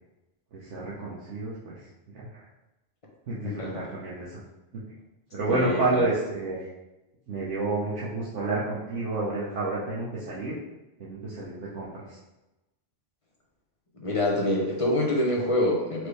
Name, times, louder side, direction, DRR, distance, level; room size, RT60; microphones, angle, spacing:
voice 1, 0.5-1.8 2.1-2.5 3.3-4.4 5.3-6.7 7.3-10.6 11.0-12.2, right 2 dB, 85° right, -7 dB, 1.2 m, -30 dB
voice 2, 3.4-3.8 5.5-6.1 14.0-16.1, left 1 dB, 30° left, -2 dB, 0.8 m, -26 dB
4.5 x 3.2 x 3.2 m, 1.0 s
omnidirectional pair, 1.2 m